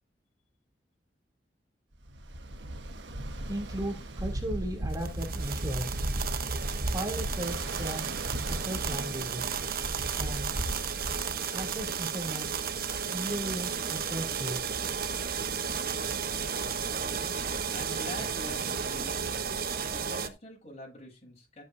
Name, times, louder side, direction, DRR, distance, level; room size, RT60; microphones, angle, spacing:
Ocean, 2.0-11.9, right 1 dB, 85° right, 1.3 m, -36 dB
voice 1, 3.5-6.0 6.9-8.2 8.5-9.5 10.2-10.5 11.5-12.5 13.1-14.6, right 1 dB, 20° right, 2.8 m, -36 dB
sound 1, 4.9-20.3, right 6 dB, 55° right, 1.0 m, -33 dB
voice 2, 17.7-19.6 19.9-21.6, equal, 35° left, 7.9 m, -44 dB
13.5 x 8.4 x 2.7 m
head